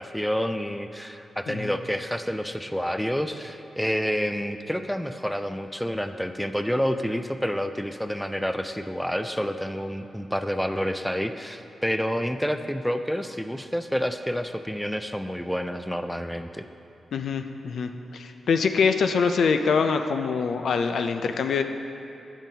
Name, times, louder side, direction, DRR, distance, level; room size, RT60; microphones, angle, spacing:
voice 1, 0.0-16.7, equal, ahead, 8 dB, 0.3 m, -29 dB
voice 2, 17.1-21.6, left 5 dB, 75° left, 7 dB, 0.4 m, -24 dB
8.8 x 7.2 x 2.7 m, 2.7 s
cardioid pair, 75°, 0 cm